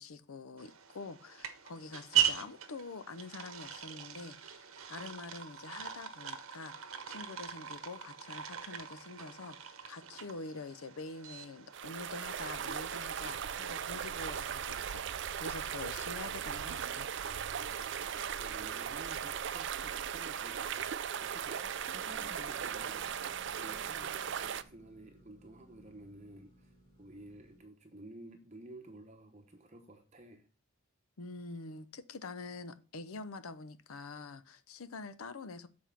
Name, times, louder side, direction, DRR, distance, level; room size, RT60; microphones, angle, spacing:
voice 1, 0.0-6.8 7.1-15.1 15.3-17.1 31.2-35.7, left 3 dB, 80° left, 0.6 m, -46 dB
sound 1, 0.6-11.8, right 10 dB, 75° right, 0.9 m, -39 dB
sound 2, 11.7-24.6, right 8 dB, 55° right, 0.4 m, -38 dB
voice 2, 17.2-23.1 23.6-30.5, right 1 dB, 30° right, 0.8 m, -53 dB
sound 3, 22.1-27.6, equal, 20° left, 2.8 m, -61 dB
7.1 x 4.3 x 5.7 m
head